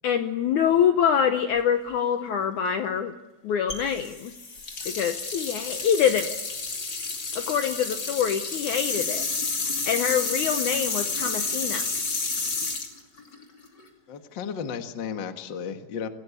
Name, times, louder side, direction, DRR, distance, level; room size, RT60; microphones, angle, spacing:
voice 1, 0.0-3.1 3.4-4.3 4.9-6.4 7.4-11.9, left 8 dB, 70° left, 7 dB, 1.9 m, -25 dB
sound 1, 3.7-13.9, left 4 dB, 30° left, 2.7 m, -30 dB
voice 2, 14.1-16.1, left 7 dB, 50° left, 7 dB, 1.3 m, -34 dB
26.5 x 17.0 x 8.4 m, 1.0 s
omnidirectional pair, 4.6 m